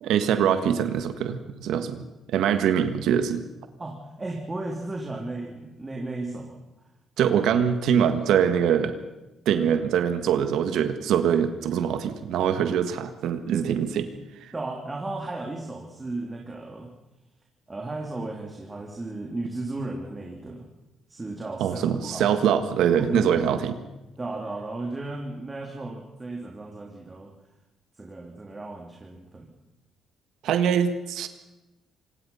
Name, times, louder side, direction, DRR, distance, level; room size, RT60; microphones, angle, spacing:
voice 1, 0.0-2.0 2.3-3.4 7.2-8.9 9.4-14.1 21.6-23.7 30.4-31.3, right 8 dB, 80° right, 9 dB, 1.6 m, -23 dB
voice 2, 3.8-6.6 14.5-16.9 17.7-20.7 21.1-22.3 23.0-23.7 24.2-27.3 27.9-29.5, right 2 dB, 20° right, 0 dB, 3.3 m, -35 dB
25.5 x 19.5 x 5.7 m, 1.0 s
cardioid pair, 90°, 0 cm